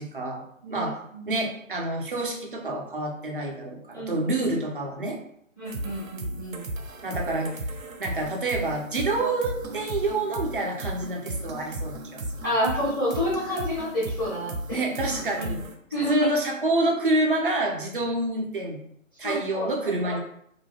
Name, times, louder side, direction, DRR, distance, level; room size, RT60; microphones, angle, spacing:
voice 1, 0.0-0.4 0.7-1.0 1.3-5.2 7.0-7.5 8.0-12.2 14.7-15.6 16.1-18.8 19.2-20.2, right 2 dB, 40° right, 1 dB, 0.5 m, -27 dB
voice 2, 0.6-1.4 3.9-4.2 5.6-6.6 12.4-14.8 15.4-15.5 15.9-16.1 19.2-19.7 20.1-20.2, equal, 15° left, -12 dB, 0.7 m, -29 dB
sound 1, 5.6-15.7, right 1 dB, 80° right, 0.6 m, -35 dB
2.3 x 2.0 x 3.2 m, 0.69 s
figure-of-eight pair, 150°, 40 cm